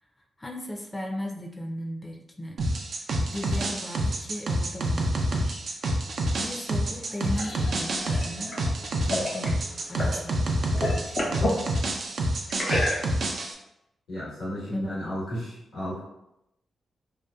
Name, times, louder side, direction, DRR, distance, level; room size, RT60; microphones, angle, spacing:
voice 1, 0.4-2.6 3.2-5.9 6.4-8.6 9.0-9.6 9.9-11.9 14.7-15.1, left 1 dB, 25° left, 0 dB, 0.5 m, -37 dB
sound 1, 2.6-13.5, right 1 dB, 70° right, 0.4 m, -28 dB
sound 2, 6.9-10.2 10.6-11.6 12.5-13.4, left 1 dB, 60° left, 0.9 m, -30 dB
voice 2, 14.1-16.0, equal, 85° left, -8 dB, 1.1 m, -33 dB
2.8 x 2.2 x 2.2 m, 0.84 s
supercardioid pair, 55°, 0 cm